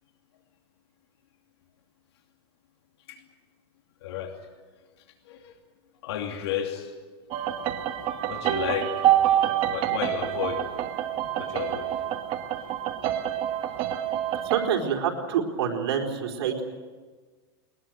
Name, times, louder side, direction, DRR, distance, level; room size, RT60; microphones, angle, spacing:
voice 1, 4.0-4.5 5.2-5.5 6.0-6.9 8.3-8.9 9.7-10.6 11.2-12.0, left 9 dB, 75° left, 4 dB, 2.7 m, -32 dB
sound 1, 7.3-14.7, right 11 dB, 40° right, 1.8 m, -27 dB
voice 2, 14.4-16.6, right 8 dB, 75° right, 2 dB, 4.4 m, -27 dB
21.5 x 20.5 x 9.1 m, 1.4 s
supercardioid pair, 145°, 14 cm